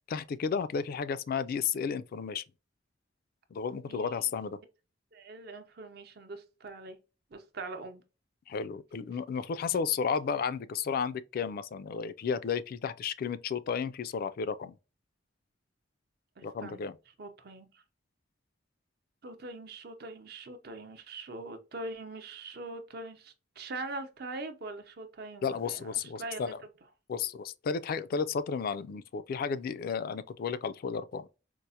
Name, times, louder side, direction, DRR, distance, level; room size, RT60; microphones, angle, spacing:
voice 1, 0.1-2.4 3.5-4.6 8.5-14.8 16.4-17.0 25.4-26.6 27.1-31.4, left 6 dB, 50° left, 0.3 m, -33 dB
voice 2, 3.7-4.3 5.1-7.0 7.3-8.1 16.4-16.8 17.2-17.8 19.2-26.6, right 2 dB, 55° right, 0.6 m, -42 dB
4.5 x 2.0 x 2.7 m
head